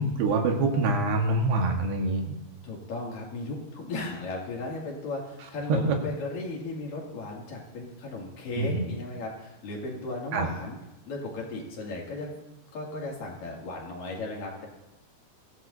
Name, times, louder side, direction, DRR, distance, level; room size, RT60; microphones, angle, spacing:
voice 1, 0.0-2.3 5.7-6.0 8.6-8.9 10.3-10.5, right 2 dB, 85° right, 2 dB, 3.7 m, -25 dB
voice 2, 2.6-10.8 11.1-12.3 12.7-14.7, left 2 dB, 60° left, -2 dB, 3.9 m, -36 dB
23.0 x 15.5 x 2.7 m, 0.92 s
omnidirectional pair, 4.6 m